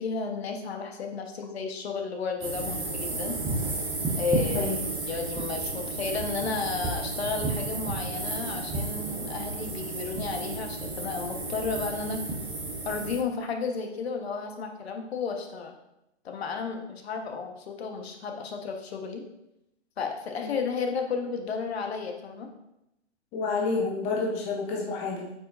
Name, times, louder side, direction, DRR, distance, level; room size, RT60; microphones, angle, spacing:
voice 1, 0.0-3.4 4.2-4.7 5.1-12.2 12.8-15.7 16.2-19.2 20.0-22.5, left 5 dB, 60° left, 4 dB, 1.2 m, -33 dB
sound 1, 2.4-13.2, right 3 dB, 5° right, 0.4 m, -32 dB
voice 2, 23.3-25.3, left 4 dB, 20° left, -1 dB, 0.8 m, -29 dB
8.2 x 4.9 x 2.6 m, 0.85 s
hypercardioid pair, 135°, 36 cm